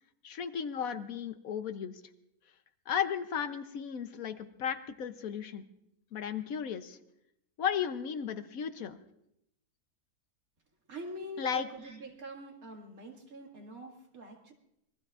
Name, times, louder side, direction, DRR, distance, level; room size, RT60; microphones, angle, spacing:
voice 1, 0.2-2.0 2.9-5.7 6.1-7.0 7.6-9.0 11.4-11.7, left 8 dB, 65° left, 10 dB, 1.2 m, -35 dB
voice 2, 10.9-14.5, right 1 dB, 65° right, 1 dB, 2.6 m, -44 dB
26.5 x 21.5 x 2.4 m, 0.80 s
omnidirectional pair, 1.6 m